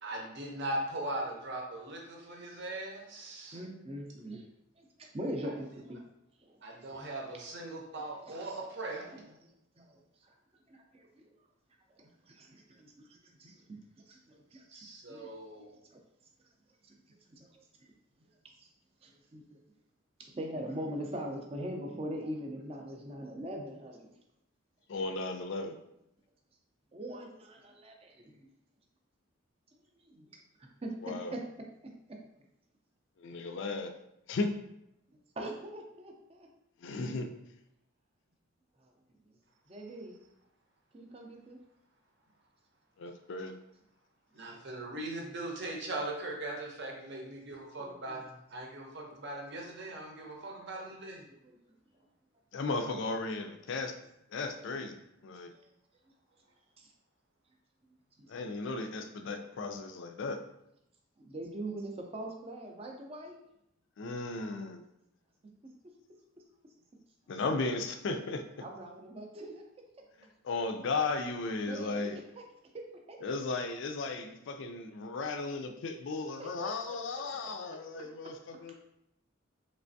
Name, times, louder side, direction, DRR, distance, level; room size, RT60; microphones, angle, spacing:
voice 1, 0.0-3.6 5.4-5.5 6.6-9.2 14.7-15.7 44.3-51.2, right 1 dB, 55° right, -1 dB, 0.8 m, -40 dB
voice 2, 2.3-2.6 3.5-4.5 4.8-4.9 5.1-6.0 6.4-6.6 7.0-7.1 8.3-8.6 9.0-10.3 10.7-11.3 11.9-13.8 14.1-15.3 15.9-16.0 16.8-17.6 18.6-18.7 19.0-19.4 20.2-24.1 26.9-28.4 30.1-31.4 31.8-32.2 35.4-36.5 38.8-38.9 39.7-40.2 40.9-41.6 47.8-48.2 51.4-51.6 55.5-55.7 56.8-56.9 58.2-58.3 61.2-63.4 68.6-69.6 71.7-72.2 72.7-73.2 76.0-76.1 76.4-76.7 78.0-78.6, right 1 dB, 30° right, 1 dB, 0.5 m, -43 dB
voice 3, 24.9-25.8 31.0-31.3 33.2-33.9 34.3-34.5 36.8-37.3 43.0-43.6 52.5-54.0 54.3-55.0 55.2-55.5 58.3-60.4 64.0-64.8 67.3-68.4 70.4-72.2 73.2-78.7, left 3 dB, 60° left, 7 dB, 0.4 m, -35 dB
3.3 x 3.1 x 2.6 m, 0.81 s
head